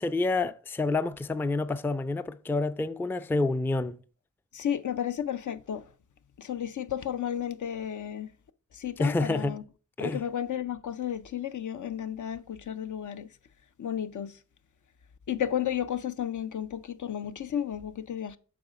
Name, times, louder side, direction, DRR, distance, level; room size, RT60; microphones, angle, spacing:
voice 1, 0.0-4.0 9.0-9.6 10.0-10.2, left 3 dB, 5° left, 0.3 m, -28 dB
voice 2, 4.5-5.8 6.4-8.3 8.7-9.6 10.0-13.3 13.8-14.3 15.3-18.4, left 9 dB, 65° left, 0.5 m, -33 dB
6.9 x 4.1 x 5.1 m
cardioid pair, 45°, 33 cm